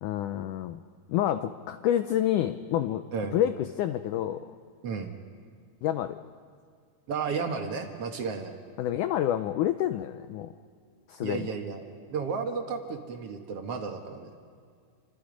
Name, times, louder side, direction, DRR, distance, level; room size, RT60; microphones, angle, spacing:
voice 1, 0.0-0.8 1.1-3.0 3.3-4.4 5.8-6.2 8.8-10.5 11.1-11.5, left 11 dB, 80° left, 10 dB, 1.8 m, -28 dB
voice 2, 4.8-5.1 7.1-8.5 11.2-11.8 12.1-14.3, right 5 dB, 55° right, 4 dB, 1.9 m, -33 dB
29.5 x 26.0 x 5.2 m, 2.2 s
omnidirectional pair, 4.4 m